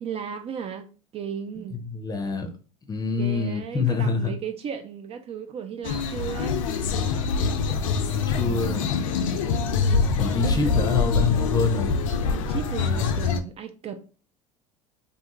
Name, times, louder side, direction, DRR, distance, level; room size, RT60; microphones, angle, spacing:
voice 1, 0.0-1.8 3.2-6.6 7.4-8.9 9.5-10.7 12.3-14.0, right 7 dB, 40° right, 0.4 m, -36 dB
voice 2, 1.7-2.5 2.9-4.3 8.3-8.9 10.2-12.3, left 4 dB, 25° left, 0.6 m, -26 dB
sound 1, 5.8-13.4, left 5 dB, 85° left, 0.4 m, -24 dB
2.5 x 2.3 x 2.9 m
hypercardioid pair, 80°, 16 cm